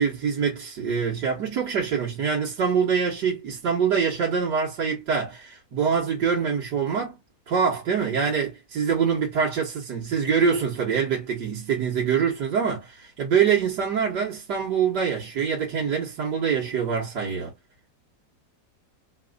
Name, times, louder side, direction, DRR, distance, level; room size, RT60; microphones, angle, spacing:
voice 1, 0.0-7.2 7.5-17.5, right 6 dB, 85° right, 2.3 m, -25 dB
5.8 x 2.5 x 2.5 m
omnidirectional pair, 1.8 m